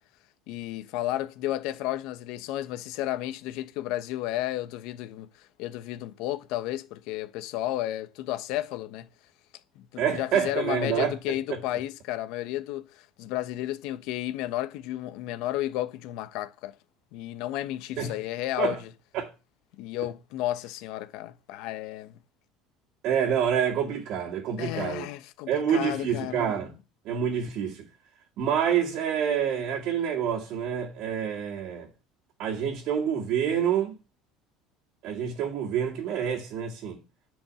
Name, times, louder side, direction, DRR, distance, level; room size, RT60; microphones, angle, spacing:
voice 1, 0.5-5.3 5.6-9.1 9.7-16.7 17.1-18.9 19.8-22.2 24.6-26.5, left 14 dB, 70° left, 1.1 m, -32 dB
voice 2, 10.0-11.1 11.5-11.6 18.0-18.1 18.6-18.8 19.1-19.3 23.0-25.1 25.5-26.7 27.1-27.9 28.4-31.9 32.4-34.0 35.0-37.0, right 8 dB, 60° right, 2.2 m, -27 dB
10.0 x 5.3 x 7.6 m
supercardioid pair, 125°, 0 cm